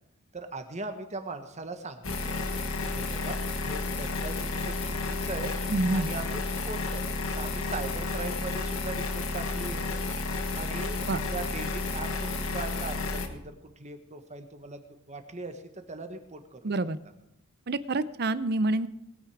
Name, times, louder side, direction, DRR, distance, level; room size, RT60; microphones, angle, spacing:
voice 1, 0.3-2.4 2.8-3.4 3.6-5.5 5.9-9.9 10.5-14.8 15.1-15.6 15.9-16.7, right 3 dB, 35° right, 7 dB, 1.4 m, -39 dB
sound 1, 2.0-13.3, left 3 dB, 80° left, 1.5 m, -31 dB
voice 2, 5.7-6.1 11.1-11.2 16.6-17.0 17.7-18.9, right 2 dB, 50° right, 15 dB, 0.6 m, -27 dB
19.5 x 9.2 x 4.9 m, 0.84 s
head